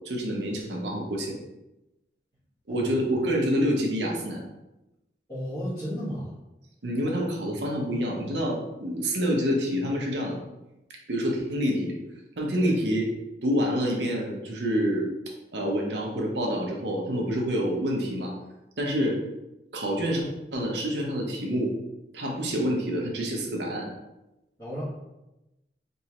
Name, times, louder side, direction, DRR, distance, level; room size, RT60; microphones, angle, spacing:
voice 1, 0.0-1.4 2.7-4.4 6.8-10.4 11.1-12.0 12.4-13.0 13.4-15.1 15.5-18.3 18.8-19.2 19.7-20.2 20.5-21.7 22.1-23.9, equal, 80° right, 0 dB, 0.8 m, -27 dB
voice 2, 5.3-6.4 12.6-12.7 24.6-24.8, equal, 20° left, -14 dB, 1.2 m, -34 dB
3.5 x 3.0 x 2.9 m, 0.95 s
head